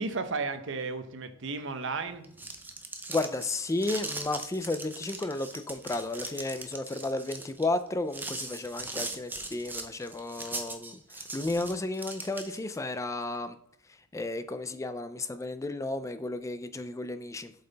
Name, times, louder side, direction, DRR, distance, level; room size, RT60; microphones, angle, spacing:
voice 1, 0.0-2.3, right 4 dB, 65° right, 9 dB, 0.8 m, -33 dB
sound 1, 2.1-12.8, right 2 dB, 10° right, 0.7 m, -40 dB
voice 2, 3.1-13.6 13.9-17.5, left 2 dB, 15° left, 12 dB, 0.3 m, -33 dB
7.7 x 5.5 x 4.0 m, 0.71 s
head